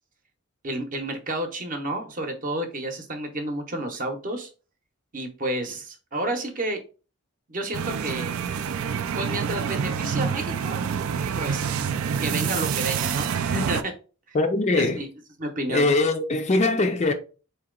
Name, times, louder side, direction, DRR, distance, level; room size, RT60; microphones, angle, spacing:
voice 1, 0.6-4.5 5.1-6.8 7.5-8.3 9.1-10.8 11.4-11.7 12.2-13.9 14.3-14.4 14.8-15.1 15.4-15.8, right 1 dB, 40° right, 0.8 m, -30 dB
sound 1, 7.7-13.8, right 7 dB, 70° right, 0.4 m, -27 dB
voice 2, 14.3-15.0 15.7-17.1, left 2 dB, 30° left, 0.4 m, -22 dB
3.8 x 2.9 x 3.7 m
head